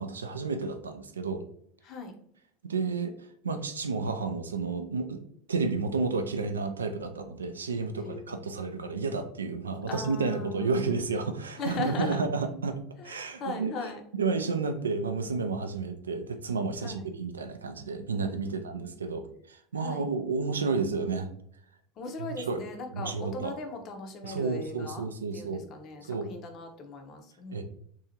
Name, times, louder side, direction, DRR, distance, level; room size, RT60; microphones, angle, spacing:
voice 1, 0.0-1.4 2.6-3.1 3.4-5.2 5.5-13.7 14.1-21.3 22.2-22.6 22.9-23.6 24.2-25.7 26.1-26.3 27.5-27.6, right 4 dB, 90° right, 7 dB, 0.3 m, -31 dB
voice 2, 1.8-2.1 8.0-8.9 9.9-11.0 11.6-12.2 13.0-14.0 16.8-17.1 18.1-18.9 19.8-20.1 22.0-25.1 25.3-27.6, left 3 dB, 45° left, 5 dB, 0.6 m, -39 dB
2.7 x 2.4 x 2.8 m, 0.66 s
hypercardioid pair, 80°, 0 cm